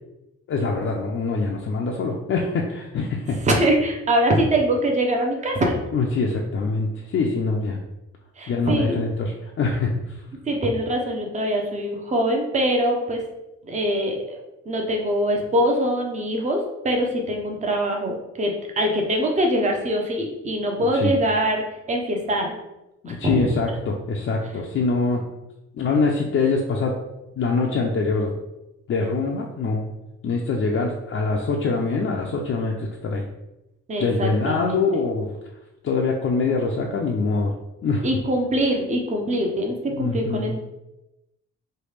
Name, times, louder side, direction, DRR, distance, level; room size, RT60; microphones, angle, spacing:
voice 1, 0.5-3.4 5.9-7.8 8.5-10.2 20.9-21.2 23.0-25.2 25.8-27.0 27.4-28.3 28.9-29.8 30.2-33.2 34.0-35.3 35.8-37.5 37.8-38.1 39.9-40.5, left 4 dB, 45° left, -1 dB, 0.4 m, -24 dB
voice 2, 3.4-5.7 8.4-9.0 10.5-13.2 13.6-22.6 23.1-23.5 33.9-34.8 38.0-40.6, right 1 dB, 25° right, 2 dB, 0.6 m, -23 dB
3.2 x 2.2 x 3.3 m, 0.95 s
cardioid pair, 90°, 30 cm